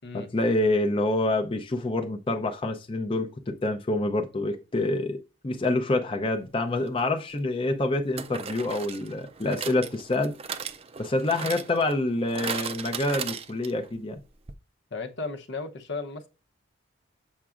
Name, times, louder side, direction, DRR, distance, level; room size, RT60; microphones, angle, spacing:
voice 1, 0.1-5.2 5.4-10.3 11.0-14.2, left 2 dB, 25° left, 0.6 m, -27 dB
sound 1, 6.9-7.0 8.2-13.9 14.2-14.3 14.5-14.6, right 6 dB, 30° right, 0.5 m, -37 dB
voice 2, 14.9-16.3, left 3 dB, 60° left, 0.8 m, -35 dB
7.3 x 5.7 x 2.5 m
head